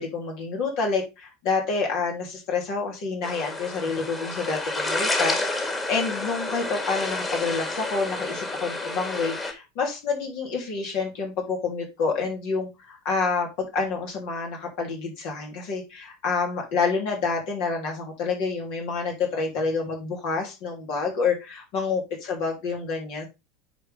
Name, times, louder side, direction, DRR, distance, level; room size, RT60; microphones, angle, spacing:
voice 1, 0.0-23.3, left 4 dB, 50° left, 0 dB, 3.1 m, -28 dB
sound 1, 3.2-9.5, left 2 dB, 15° left, 2.7 m, -29 dB
9.9 x 4.7 x 3.6 m, 0.25 s
figure-of-eight pair, 80°, 0 cm